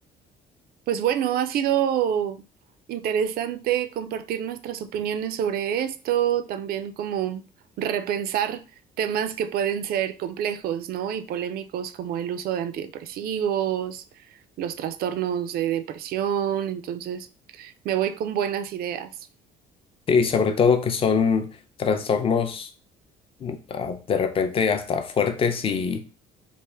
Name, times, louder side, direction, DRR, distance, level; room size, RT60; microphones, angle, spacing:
voice 1, 0.9-2.4 2.9-7.4 7.8-8.6 9.0-14.0 14.6-17.3 17.5-19.1, right 9 dB, 65° right, 0.4 m, -27 dB
voice 2, 20.1-21.5 21.8-22.7 23.4-26.1, left 6 dB, 35° left, 0.5 m, -23 dB
3.3 x 2.4 x 3.4 m
cardioid pair, 110°, 17 cm